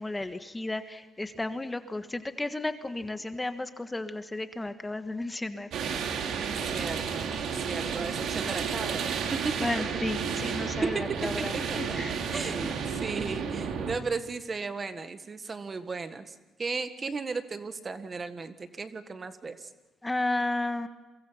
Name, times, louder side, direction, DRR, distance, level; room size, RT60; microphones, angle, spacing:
voice 1, 0.0-5.7 9.6-11.5 12.0-12.7 20.0-20.9, left 2 dB, 15° left, 9 dB, 1.4 m, -33 dB
sound 1, 5.7-13.9, right 6 dB, 75° right, 2.9 m, -32 dB
voice 2, 6.5-9.0 9.3-10.3 10.8-11.0 11.4-19.7, right 4 dB, 35° right, 9 dB, 1.7 m, -36 dB
29.5 x 23.5 x 5.9 m, 1.1 s
cardioid pair, 90°, 0 cm